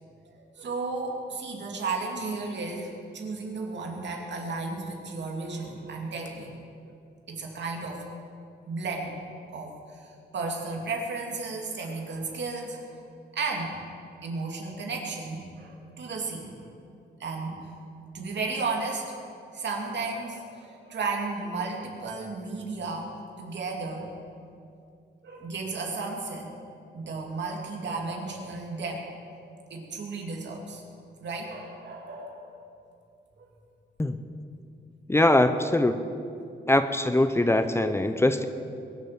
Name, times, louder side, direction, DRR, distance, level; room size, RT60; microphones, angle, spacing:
voice 1, 0.6-6.5 6.8-7.0 7.3-8.1 8.7-9.2 9.5-12.9 13.3-13.8 14.2-16.7 17.2-17.7 18.1-19.2 19.5-23.1 23.4-24.1 25.2-26.5 26.9-30.8 31.2-32.6 33.4-33.5, right 3 dB, 70° right, 1 dB, 2.6 m, -34 dB
voice 2, 35.1-36.0 36.7-38.5, left 1 dB, 15° left, 9 dB, 0.6 m, -22 dB
21.5 x 7.5 x 7.5 m, 2.5 s
wide cardioid pair, 140°, 19 cm